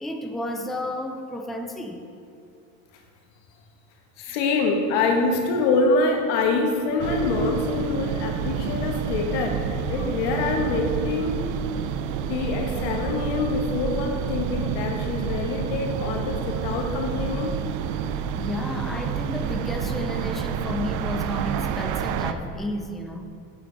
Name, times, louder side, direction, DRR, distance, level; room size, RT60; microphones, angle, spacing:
voice 1, 0.0-2.0 18.3-23.4, left 1 dB, ahead, 4 dB, 0.4 m, -32 dB
voice 2, 4.2-11.4 12.3-17.5, left 3 dB, 90° left, 2 dB, 1.3 m, -25 dB
sound 1, 7.0-22.3, right 7 dB, 70° right, 0.6 m, -29 dB
7.9 x 7.6 x 3.9 m, 2.4 s
cardioid pair, 135°, 33 cm